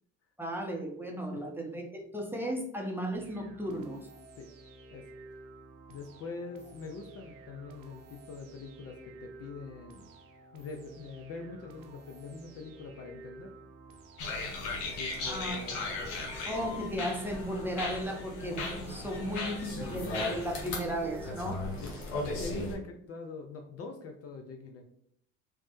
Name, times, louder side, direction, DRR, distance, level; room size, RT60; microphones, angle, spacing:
voice 1, 0.4-4.1 15.2-15.6 16.5-21.7, equal, 5° right, 0 dB, 0.7 m, -35 dB
sound 1, 3.1-22.1, right 2 dB, 60° right, 0.6 m, -52 dB
voice 2, 5.9-10.1 10.5-13.5 15.0-16.3 21.8-22.0 22.4-24.9, left 4 dB, 40° left, 4 dB, 0.5 m, -43 dB
sound 2, 14.2-22.8, left 3 dB, 80° left, 0.9 m, -37 dB
3.2 x 2.1 x 3.0 m, 0.70 s
hypercardioid pair, 65°, 36 cm